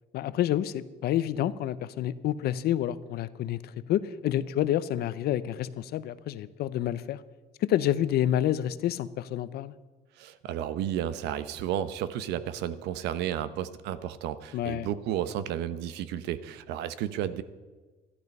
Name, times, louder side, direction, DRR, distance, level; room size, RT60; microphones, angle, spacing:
voice 1, 0.1-7.2 7.6-9.7 14.5-14.9, left 12 dB, 70° left, 15 dB, 0.7 m, -28 dB
voice 2, 10.2-17.4, right 11 dB, 85° right, 14 dB, 0.9 m, -32 dB
13.5 x 12.0 x 5.4 m, 1.3 s
cardioid pair, 110°, 17 cm